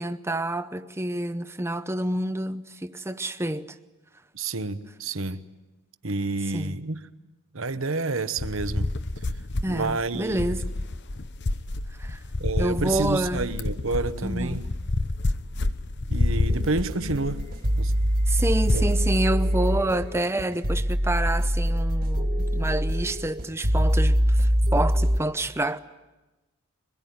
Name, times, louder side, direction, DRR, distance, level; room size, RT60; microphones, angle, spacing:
voice 1, 0.0-3.8 6.5-6.7 9.6-10.6 12.0-12.2 12.6-13.5 14.2-14.6 18.3-25.8, right 1 dB, 10° right, 0.8 m, -28 dB
voice 2, 4.3-5.4 6.0-7.0 7.5-8.9 9.7-10.6 12.4-14.7 16.1-17.5 17.8-17.9 18.7-18.8, right 3 dB, 60° right, 1.1 m, -29 dB
sound 1, 8.4-19.0, left 2 dB, 50° left, 0.9 m, -29 dB
sound 2, 16.5-25.2, equal, 40° right, 2.1 m, -24 dB
24.0 x 21.0 x 9.4 m
head